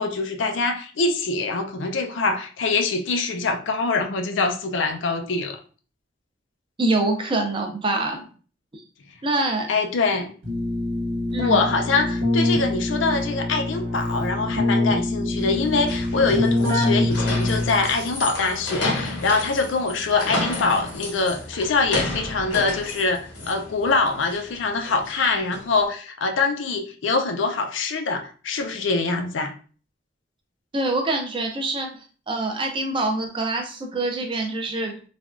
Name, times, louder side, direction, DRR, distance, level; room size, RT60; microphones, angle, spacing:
voice 1, 0.0-5.6 9.7-10.3 11.4-29.5, left 3 dB, 85° left, 0.5 m, -24 dB
voice 2, 6.8-8.3 8.7-8.8 9.2-9.7 11.3-11.7 30.7-34.9, right 2 dB, 30° right, 0.5 m, -25 dB
Keyboard (musical), 10.4-18.0, left 2 dB, 80° right, 1.0 m, -24 dB
sound 1, 15.4-25.8, left 2 dB, 70° left, 0.9 m, -32 dB
3.3 x 2.2 x 2.4 m
head